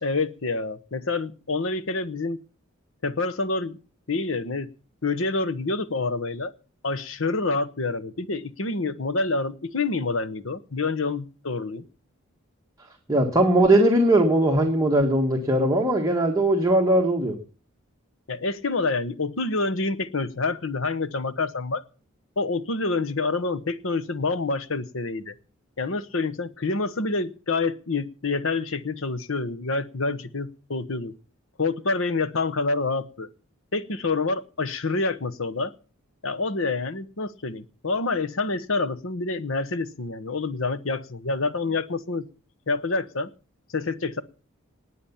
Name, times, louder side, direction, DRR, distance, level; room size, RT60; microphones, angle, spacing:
voice 1, 0.0-2.4 3.0-3.8 4.1-4.7 5.0-6.5 6.8-11.8 18.3-21.8 22.4-25.3 25.8-31.1 31.6-33.3 33.7-35.7 36.2-42.2 42.7-43.3 43.7-44.2, left 3 dB, 70° left, 12 dB, 1.1 m, -27 dB
voice 2, 13.1-17.4, right 1 dB, 15° right, 2 dB, 1.7 m, -20 dB
19.5 x 7.1 x 7.1 m, 0.37 s
head